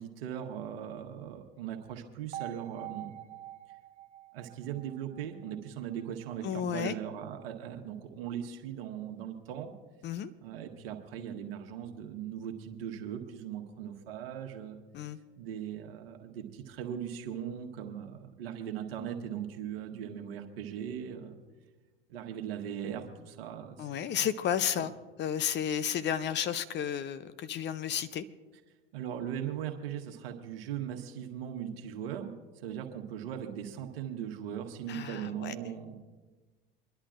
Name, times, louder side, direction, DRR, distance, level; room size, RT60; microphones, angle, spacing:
voice 1, 0.0-3.2 4.3-9.7 10.4-14.8 15.4-21.4 22.1-24.3 24.8-24.9 28.9-36.0, right 9 dB, 65° right, 4 dB, 1.6 m, -39 dB
sound 1, 2.3-6.3, right 14 dB, 25° right, 0.5 m, -46 dB
voice 2, 6.4-6.9 10.0-10.3 14.9-15.2 23.8-24.9 25.2-28.3 34.9-35.5, left 9 dB, 35° left, 14 dB, 0.7 m, -32 dB
26.5 x 11.5 x 2.5 m, 1.3 s
figure-of-eight pair, 75°, 31 cm